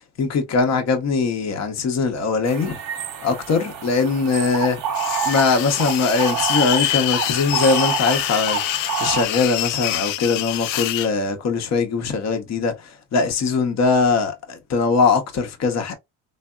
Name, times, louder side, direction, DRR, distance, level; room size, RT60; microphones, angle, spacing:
voice 1, 0.2-2.8 3.2-4.8 5.2-15.9, left 4 dB, 35° left, 0.8 m, -21 dB
sound 1, 2.5-9.2, right 7 dB, 50° right, 0.9 m, -28 dB
sound 2, 4.9-11.1, left 14 dB, 75° left, 0.6 m, -25 dB
3.4 x 2.0 x 2.2 m
supercardioid pair, 90°, 46 cm